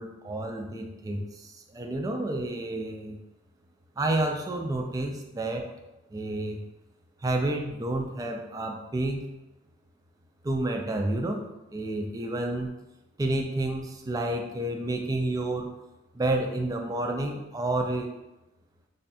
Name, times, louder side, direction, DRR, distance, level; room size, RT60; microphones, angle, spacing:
voice 1, 0.0-3.2 4.0-5.6 6.1-6.6 7.2-9.2 10.4-11.4 11.7-12.7 13.2-15.7 16.1-18.1, right 2 dB, 20° right, 3 dB, 0.3 m, -30 dB
3.4 x 2.2 x 4.1 m, 1.0 s
head